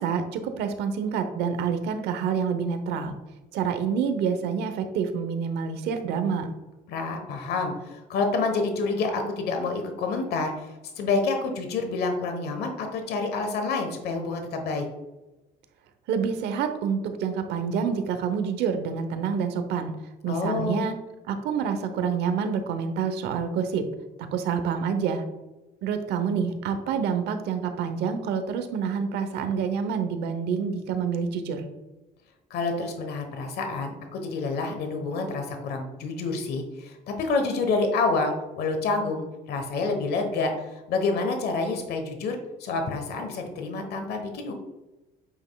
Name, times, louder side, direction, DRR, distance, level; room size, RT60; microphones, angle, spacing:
voice 1, 0.0-3.1 3.5-6.5 16.1-19.9 20.2-20.9 21.3-23.8 24.2-25.2 25.8-31.7, right 6 dB, 85° right, 8 dB, 0.9 m, -27 dB
voice 2, 6.9-14.8 20.3-20.9 32.5-44.5, left 3 dB, 70° left, 5 dB, 1.2 m, -28 dB
8.6 x 5.5 x 2.3 m, 1.0 s
cardioid pair, 110°, 17 cm